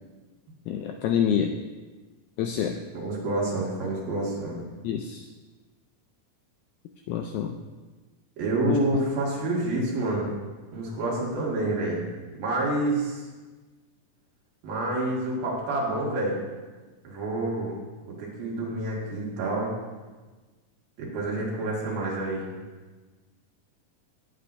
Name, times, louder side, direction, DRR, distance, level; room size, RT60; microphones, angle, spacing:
voice 1, 0.7-1.5 2.4-2.8 4.8-5.3 7.1-7.6 8.7-8.8, left 8 dB, 85° left, 4 dB, 1.7 m, -27 dB
voice 2, 2.9-4.6 8.4-10.3 10.7-12.1 12.4-13.2 14.6-16.4 17.0-17.7 18.0-19.7 21.0-22.5, right 2 dB, 85° right, -4 dB, 3.8 m, -28 dB
17.5 x 7.7 x 2.6 m, 1.3 s
omnidirectional pair, 3.9 m